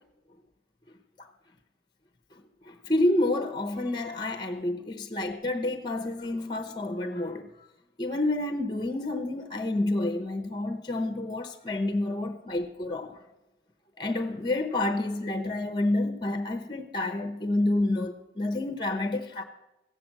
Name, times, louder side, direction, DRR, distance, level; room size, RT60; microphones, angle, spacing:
voice 1, 2.3-7.5 8.0-13.2 14.0-19.4, left 2 dB, 25° left, 0.8 m, -29 dB
15.5 x 7.6 x 7.5 m
head